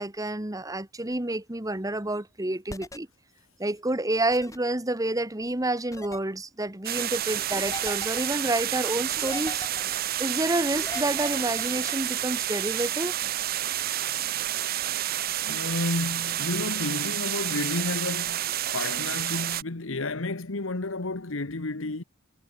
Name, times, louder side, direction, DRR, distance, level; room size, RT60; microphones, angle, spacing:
voice 1, 0.0-3.1 3.6-9.6 10.2-13.2, right 1 dB, 15° right, 1.5 m, -29 dB
sound 1, 2.7-3.0 4.3-4.6 5.9-6.2 7.5-8.3 9.1-10.0 10.7-11.9, left 2 dB, 15° left, 2.0 m, -39 dB
sound 2, 6.8-19.6, right 12 dB, 45° right, 0.6 m, -29 dB
voice 2, 15.5-22.0, left 2 dB, 75° left, 1.4 m, -31 dB
head